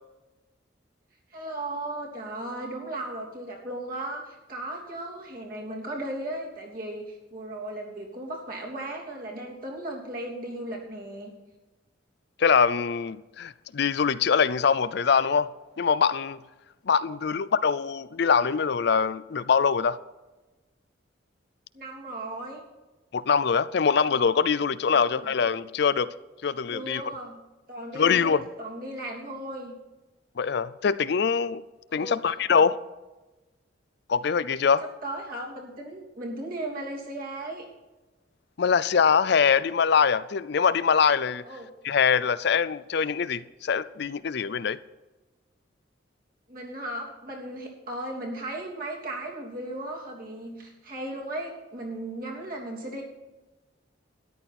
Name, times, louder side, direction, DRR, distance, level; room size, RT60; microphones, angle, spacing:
voice 1, 1.3-11.3 17.1-17.2 21.7-22.6 24.9-25.3 26.7-27.4 27.7-29.7 31.9-32.3 34.8-37.7 41.4-41.7 46.5-53.0, right 1 dB, 50° right, 3.1 m, -36 dB
voice 2, 12.4-16.4 16.9-20.0 23.1-26.1 26.4-27.0 27.9-28.4 30.4-31.6 31.9-32.8 34.1-34.8 38.6-41.4 41.8-44.8, left 6 dB, 60° left, 0.5 m, -23 dB
13.5 x 11.0 x 4.3 m
head